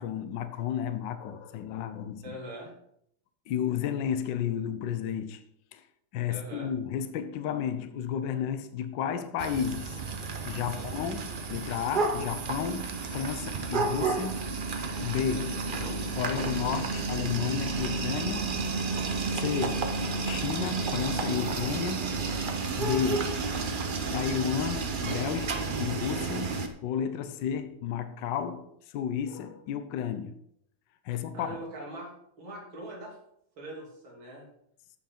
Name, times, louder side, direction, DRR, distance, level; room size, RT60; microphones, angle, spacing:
voice 1, 0.0-2.4 3.5-5.4 5.7-5.8 6.1-10.0 10.4-14.5 15.0-15.5 16.2-18.5 19.3-19.9 20.2-22.2 22.7-23.4 24.1-30.4 31.0-31.6, left 8 dB, 70° left, 1.4 m, -32 dB
voice 2, 2.2-2.7 6.3-6.7 10.7-10.9 15.7-16.0 31.1-32.1 32.4-33.1 33.6-34.5, right 1 dB, 80° right, 3.7 m, -42 dB
sound 1, 9.4-26.7, right 4 dB, 60° right, 0.5 m, -31 dB
14.0 x 5.8 x 4.4 m
omnidirectional pair, 2.2 m